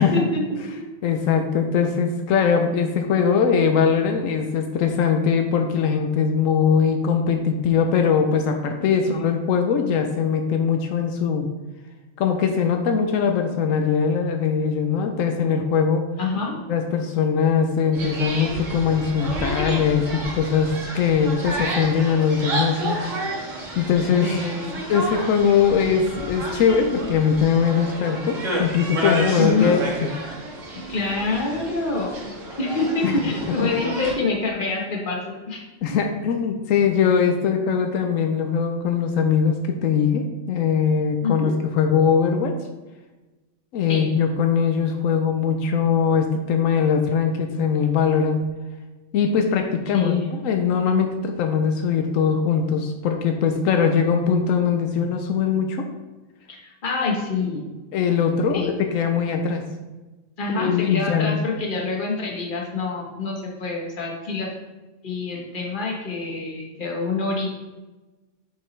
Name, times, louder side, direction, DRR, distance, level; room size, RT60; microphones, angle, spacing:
voice 1, 0.0-0.8 2.4-2.5 9.0-9.1 16.2-16.6 24.2-24.8 29.4-29.8 30.9-32.3 32.6-35.2 35.5-35.6 35.9-36.0 41.2-41.6 43.9-44.1 49.9-50.3 56.5-57.7 58.5-58.7 60.4-64.5 65.0-67.5, left 3 dB, 40° left, 0 dB, 1.3 m, -26 dB
voice 2, 1.0-11.5 12.2-16.0 16.7-23.4 23.8-24.3 24.9-29.8 33.0-33.3 35.8-42.6 43.7-48.4 49.1-55.9 57.9-59.6 60.5-61.4, left 6 dB, 85° left, 5 dB, 1.0 m, -21 dB
sound 1, 17.9-34.1, right 1 dB, 75° right, 1.8 m, -30 dB
6.8 x 5.6 x 3.2 m, 1.2 s
omnidirectional pair, 1.3 m